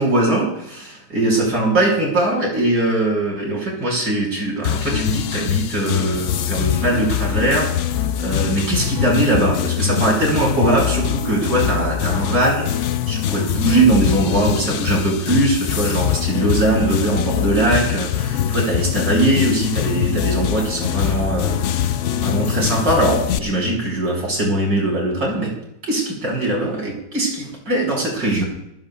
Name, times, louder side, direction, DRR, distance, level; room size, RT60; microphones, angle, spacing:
voice 1, 0.0-25.5 25.9-28.4, right 1 dB, 70° right, -2 dB, 6.1 m, -21 dB
sound 1, 4.6-23.4, left 10 dB, 85° left, 0.6 m, -23 dB
26.5 x 15.5 x 2.4 m, 0.84 s
omnidirectional pair, 2.0 m